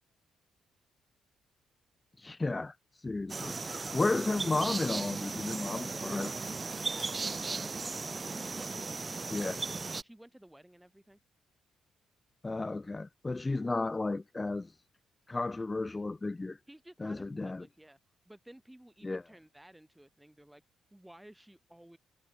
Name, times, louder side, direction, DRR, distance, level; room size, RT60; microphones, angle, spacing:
voice 1, 2.2-2.7 3.0-3.6 3.9-6.3 9.3-9.6 12.4-14.7 15.3-16.6 17.0-17.6 19.0-19.2, left 3 dB, 20° left, 1.1 m, -33 dB
sound 1, 3.3-10.0, right 4 dB, 30° right, 0.6 m, -36 dB
voice 2, 6.8-7.8 8.3-9.0 9.2-11.2 16.7-18.0 18.2-20.6 20.9-22.0, right 1 dB, 5° right, 6.1 m, -55 dB
cardioid pair, 90°, 0 cm